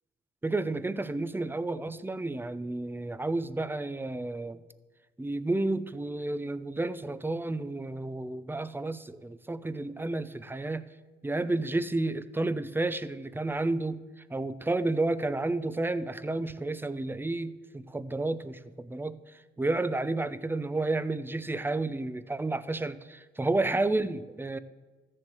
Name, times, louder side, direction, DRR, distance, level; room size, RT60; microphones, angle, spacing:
voice 1, 0.4-4.6 5.2-10.9 11.2-14.0 14.3-19.2 19.6-24.6, right 2 dB, 10° right, 14 dB, 0.7 m, -31 dB
14.0 x 7.7 x 7.8 m, 1.3 s
cardioid pair, 90°, 20 cm